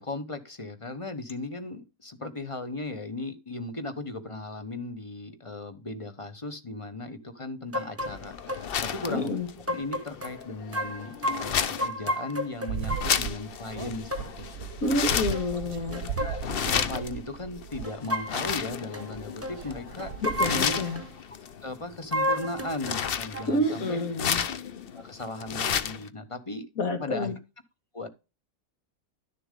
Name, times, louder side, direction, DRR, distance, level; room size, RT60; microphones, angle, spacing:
voice 1, 0.0-9.3 9.7-14.7 16.0-16.4 16.7-20.1 20.5-20.8 21.6-24.0 24.9-26.7 27.0-27.3 27.9-28.1, left 2 dB, 25° left, 9 dB, 0.9 m, -37 dB
sound 1, 7.7-8.2 8.5-8.6 9.0-9.1 9.7-10.3 10.7-13.2 14.1-14.3 14.8-15.0 15.3-15.5 15.9-17.1 17.8-18.5 18.9-19.1 19.4-19.6 20.0-21.1 22.1-23.0 23.3-23.5, left 1 dB, 10° right, 0.9 m, -32 dB
sound 2, 8.0-26.1, left 8 dB, 50° left, 0.7 m, -33 dB
voice 2, 9.1-9.5 14.8-16.1 20.2-21.0 23.5-24.4 26.8-27.4, left 1 dB, 70° left, 7 dB, 2.1 m, -28 dB
sound 3, 12.7-21.1, right 9 dB, 75° right, 1.1 m, -38 dB
11.5 x 6.9 x 3.7 m, 0.29 s
omnidirectional pair, 1.6 m